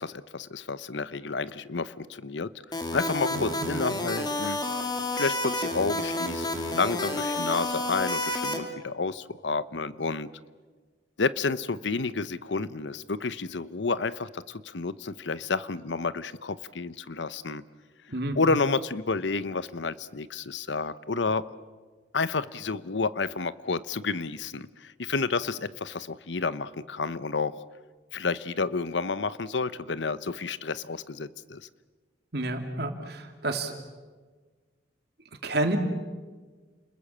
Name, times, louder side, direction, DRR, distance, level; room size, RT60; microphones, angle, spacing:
voice 1, 0.0-2.5 2.9-4.6 5.1-10.3 11.2-17.6 18.4-21.5 22.1-27.6 28.1-31.6, left 4 dB, 80° left, 16 dB, 0.9 m, -30 dB
sound 1, 2.7-8.6, left 2 dB, 25° left, 2.6 m, -30 dB
voice 2, 32.3-33.7 35.4-35.8, right 2 dB, 60° right, 5 dB, 2.8 m, -29 dB
30.0 x 21.5 x 7.5 m, 1.4 s
head